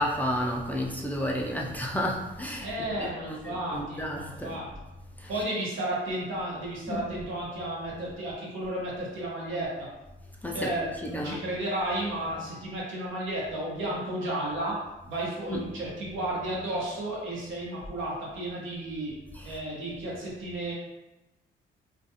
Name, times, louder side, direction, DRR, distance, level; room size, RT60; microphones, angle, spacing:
voice 1, 0.0-2.7 3.0-4.6 5.2-5.3 6.9-7.0 10.4-10.7 11.1-11.4 15.5-15.6 19.5-19.6, equal, 10° left, -2 dB, 0.3 m, -31 dB
voice 2, 2.6-4.7 5.3-9.9 10.5-14.8 15.1-19.1 19.4-20.7, right 1 dB, 85° right, -4 dB, 0.9 m, -33 dB
2.4 x 2.3 x 2.7 m, 0.99 s
cardioid pair, 90°, 20 cm